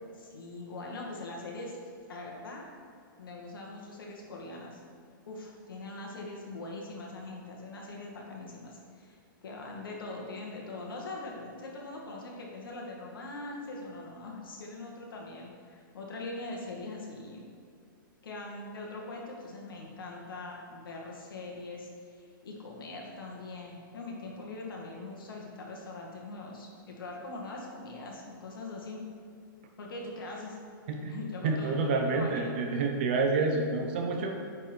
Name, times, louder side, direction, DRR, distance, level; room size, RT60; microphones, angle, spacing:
voice 1, 0.1-1.8 2.1-2.7 3.2-4.8 5.3-9.2 9.4-17.5 18.2-29.1 29.8-30.6 31.1-32.5, left 2 dB, 75° left, -2 dB, 2.0 m, -42 dB
voice 2, 30.9-31.2 31.4-34.4, right 3 dB, 30° right, 2 dB, 0.7 m, -28 dB
9.6 x 4.2 x 4.5 m, 2.2 s
hypercardioid pair, 180°, 12 cm